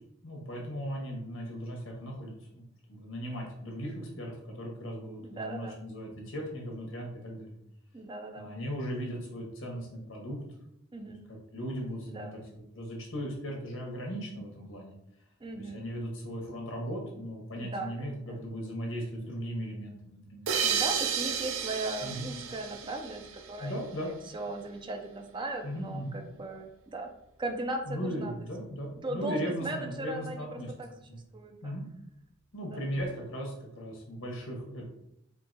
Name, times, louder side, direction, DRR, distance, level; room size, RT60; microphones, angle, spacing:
voice 1, 0.2-7.5 8.4-10.4 11.0-14.9 15.5-20.5 22.0-22.3 23.6-24.1 25.6-26.2 27.9-30.7 31.1-31.2 31.6-31.8 32.5-34.8, equal, 90° left, 0 dB, 1.3 m, -38 dB
voice 2, 5.2-5.8 7.9-8.5 10.9-11.2 12.1-12.4 15.4-15.8 17.6-18.4 20.6-23.2 23.5-23.7 24.0-27.1 27.4-28.3 28.6-31.7 32.7-32.9, right 2 dB, 25° right, 4 dB, 0.4 m, -38 dB
sound 1, 20.5-23.8, right 7 dB, 80° right, 0.5 m, -32 dB
4.6 x 2.7 x 2.7 m, 0.77 s
head